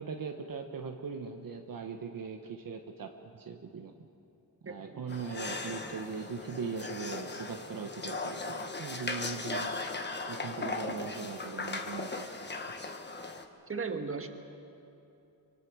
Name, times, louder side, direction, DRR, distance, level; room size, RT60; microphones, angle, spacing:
voice 1, 0.0-3.9 4.6-9.7 10.3-12.2, right 5 dB, 60° right, 4 dB, 1.3 m, -40 dB
voice 2, 4.6-5.0 13.7-14.3, right 4 dB, 35° right, 5 dB, 1.7 m, -36 dB
sound 1, 5.1-13.4, left 3 dB, 30° left, 1.4 m, -38 dB
24.5 x 22.5 x 6.3 m, 2.8 s
wide cardioid pair, 115°, 38 cm